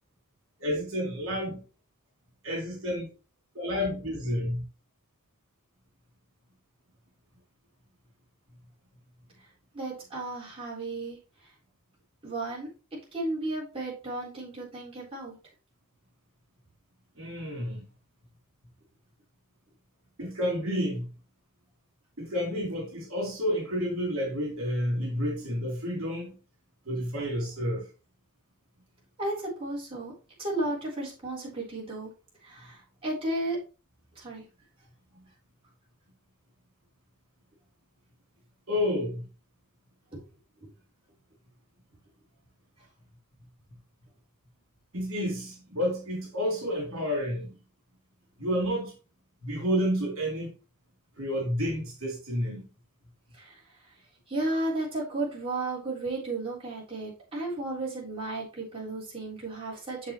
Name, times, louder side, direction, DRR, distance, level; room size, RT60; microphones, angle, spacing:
voice 1, 0.6-1.6 2.4-3.1 3.5-4.6 17.2-17.8 20.2-21.1 22.2-26.3 26.9-27.8 38.7-39.2 44.9-47.5 48.4-48.9 49.4-50.5 51.2-52.7, equal, 65° right, 0 dB, 2.9 m, -30 dB
voice 2, 9.7-11.2 12.2-12.7 13.1-15.3 29.2-30.1 30.4-32.1 32.4-33.6 34.1-34.4 40.1-40.2 40.6-40.7 53.4-53.6 54.3-60.1, right 2 dB, 25° right, -6 dB, 3.9 m, -33 dB
7.3 x 6.9 x 3.1 m, 0.33 s
head